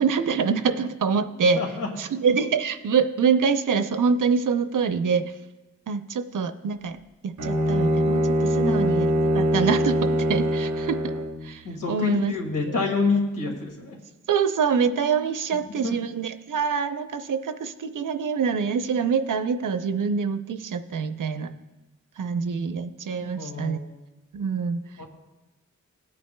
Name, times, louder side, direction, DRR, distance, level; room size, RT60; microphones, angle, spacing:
voice 1, 0.0-1.6 2.0-5.3 5.9-7.0 7.2-9.1 9.3-11.1 11.4-12.3 12.7-12.8 14.3-21.6 22.2-23.8 24.3-24.8, right 6 dB, 85° right, 10 dB, 0.6 m, -25 dB
voice 2, 1.6-1.9 8.5-8.9 11.6-14.0 15.5-16.0 23.3-23.9 25.0-25.1, left 3 dB, 90° left, 1 dB, 1.9 m, -28 dB
Bowed string instrument, 7.4-11.4, equal, 65° right, 1.1 m, -23 dB
21.0 x 8.7 x 2.2 m, 1.1 s
wide cardioid pair, 145°, 31 cm